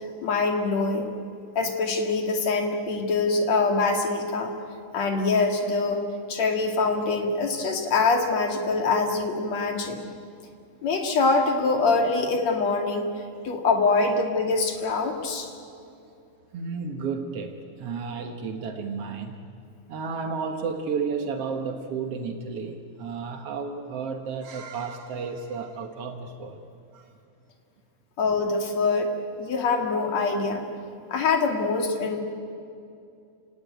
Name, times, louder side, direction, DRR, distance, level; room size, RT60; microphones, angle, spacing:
voice 1, 0.2-1.1 1.6-4.5 4.9-6.0 6.3-10.0 10.8-13.1 13.4-15.5 28.2-29.1 29.4-30.6 31.1-32.2, left 3 dB, 45° left, 4 dB, 3.0 m, -24 dB
voice 2, 16.5-19.4 19.9-26.6 26.9-27.0, right 5 dB, 90° right, 5 dB, 1.3 m, -32 dB
29.5 x 18.5 x 9.3 m, 2.5 s
omnidirectional pair, 4.9 m